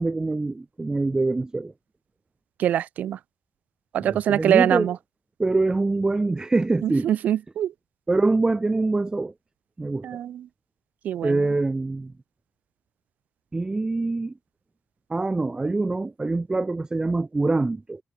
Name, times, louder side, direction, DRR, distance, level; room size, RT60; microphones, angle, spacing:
voice 1, 0.0-1.7 4.0-4.9 5.4-7.1 8.1-9.3 9.8-10.2 11.2-12.1 13.5-14.3 15.1-18.0, right 3 dB, 25° right, 6.3 m, -24 dB
voice 2, 2.6-3.2 3.9-5.0 6.8-7.7 10.0-10.5 11.0-11.4, right 10 dB, 75° right, 5.8 m, -23 dB
supercardioid pair, 55°, 3 cm